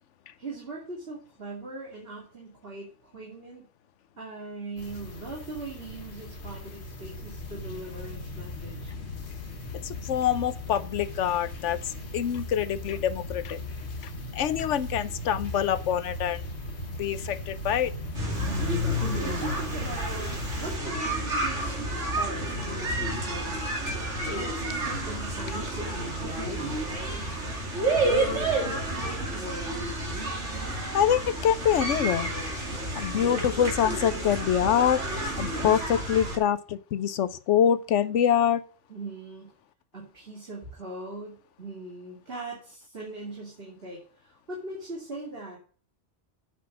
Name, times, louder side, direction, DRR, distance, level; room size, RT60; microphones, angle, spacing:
voice 1, 0.4-3.6 4.2-8.9 18.5-21.8 22.2-23.6 24.3-26.9 28.1-29.9 38.9-39.5 39.9-45.6, right 2 dB, 55° right, -3 dB, 2.9 m, -40 dB
sound 1, 4.8-20.8, left 1 dB, 65° left, 1.7 m, -38 dB
voice 2, 9.8-11.8 12.1-13.6 14.3-16.4 17.0-17.9 30.9-32.6 32.9-35.0 35.4-38.6, left 9 dB, 80° left, 15 dB, 1.1 m, -25 dB
sound 2, 18.1-36.4, right 1 dB, 85° right, 3.1 m, -30 dB
8.4 x 6.0 x 7.2 m, 0.42 s
omnidirectional pair, 1.2 m